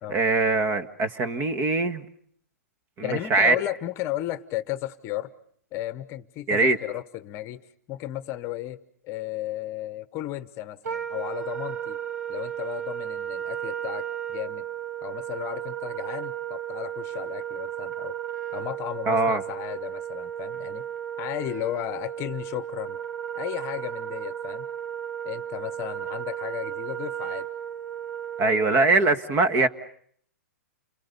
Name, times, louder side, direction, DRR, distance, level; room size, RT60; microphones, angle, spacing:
voice 1, 0.1-2.0 3.0-3.5 6.5-6.8 19.1-19.4 28.4-29.7, right 3 dB, 30° right, 11 dB, 1.6 m, -22 dB
voice 2, 3.0-5.3 5.7-7.6 7.9-8.8 9.0-12.0 12.3-14.6 15.0-18.2 18.5-20.8 21.2-23.0 23.3-24.7 25.2-27.5, left 14 dB, 30° left, 14 dB, 1.0 m, -34 dB
Wind instrument woodwind instrument, 10.8-29.0, right 10 dB, 75° right, 1.6 m, -34 dB
29.5 x 22.5 x 6.9 m, 0.63 s
hypercardioid pair, 135°, 9 cm